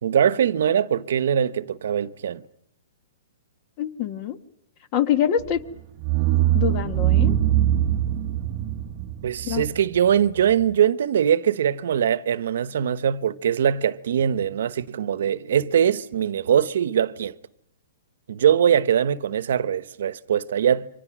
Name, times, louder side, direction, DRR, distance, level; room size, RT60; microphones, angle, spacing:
voice 1, 0.0-2.4 9.2-17.3 18.3-20.9, right 9 dB, 65° right, 1.0 m, -22 dB
voice 2, 3.8-4.4 4.9-5.6 6.5-7.4 9.4-9.7, left 9 dB, 30° left, 1.5 m, -25 dB
sound 1, 5.4-5.6 6.0-10.6, right 12 dB, 30° right, 0.9 m, -22 dB
29.0 x 24.5 x 6.2 m
hypercardioid pair, 160°, 0 cm